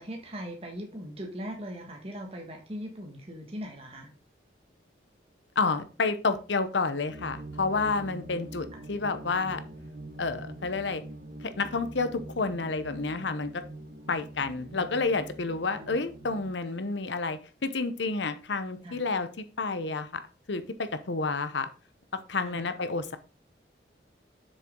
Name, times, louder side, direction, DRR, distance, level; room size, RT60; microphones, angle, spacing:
voice 1, 0.0-4.1 8.7-8.8 15.7-16.0 18.8-19.0 22.4-22.6, equal, 35° right, 1 dB, 1.6 m, -40 dB
voice 2, 5.6-9.6 10.2-11.0 11.4-13.6 14.1-20.2 20.5-21.7 22.3-23.2, left 3 dB, 80° left, 11 dB, 0.9 m, -30 dB
sound 1, 7.1-16.5, right 1 dB, 65° right, 1.5 m, -44 dB
7.5 x 6.6 x 3.8 m, 0.34 s
head